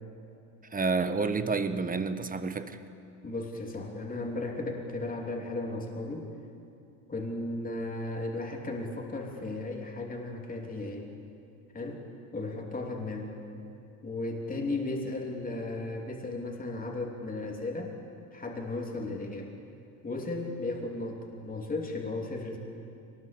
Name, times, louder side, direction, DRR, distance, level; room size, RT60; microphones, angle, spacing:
voice 1, 0.7-2.8, right 4 dB, 20° right, 11 dB, 1.3 m, -29 dB
voice 2, 3.2-6.3 7.1-11.1 11.7-12.0 12.3-13.4 14.0-17.9 18.3-19.5 20.0-22.6, left 2 dB, 20° left, 1 dB, 3.2 m, -35 dB
23.0 x 19.5 x 6.9 m, 2.6 s
hypercardioid pair, 80°, 43 cm